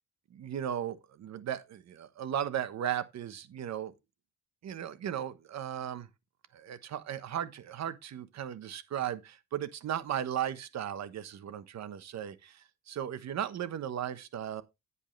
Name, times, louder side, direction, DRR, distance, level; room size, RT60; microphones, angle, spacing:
voice 1, 0.3-3.9 4.6-6.1 6.5-14.6, right 10 dB, 60° right, 1.2 m, -36 dB
10.5 x 8.4 x 3.2 m
cardioid pair, 90°, 30 cm